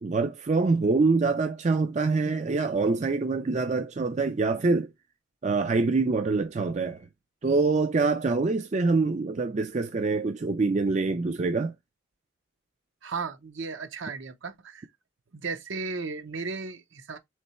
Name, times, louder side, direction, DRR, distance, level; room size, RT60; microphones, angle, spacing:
voice 1, 0.0-4.9 5.4-7.1 7.4-11.7, right 3 dB, 35° right, 0.4 m, -25 dB
voice 2, 13.0-14.9 15.3-17.2, right 4 dB, 65° right, 0.7 m, -35 dB
3.7 x 3.2 x 4.1 m
head